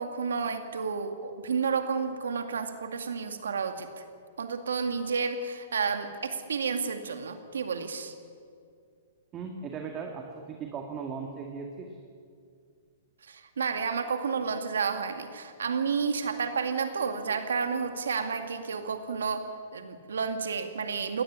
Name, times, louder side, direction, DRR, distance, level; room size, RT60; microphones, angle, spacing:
voice 1, 0.0-4.0 4.4-8.1 13.2-21.2, right 5 dB, 90° right, 7 dB, 2.1 m, -31 dB
voice 2, 9.3-12.0, right 5 dB, 25° right, 2 dB, 2.0 m, -38 dB
19.0 x 13.5 x 9.9 m, 2.3 s
hypercardioid pair, 140°, 0 cm